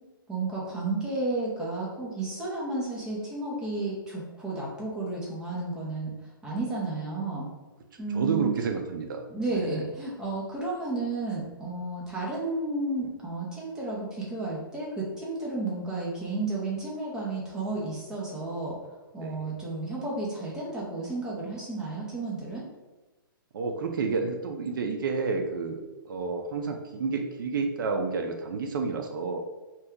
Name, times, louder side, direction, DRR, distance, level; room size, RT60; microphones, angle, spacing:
voice 1, 0.3-6.1 6.4-7.5 8.0-8.5 9.3-18.7 19.1-22.6, right 2 dB, 5° right, -6 dB, 0.6 m, -32 dB
voice 2, 7.9-9.2 9.5-9.9 19.2-19.5 23.5-25.8 26.1-29.4, right 4 dB, 65° right, 4 dB, 0.4 m, -30 dB
2.8 x 2.2 x 3.5 m, 1.1 s
hypercardioid pair, 155°, 12 cm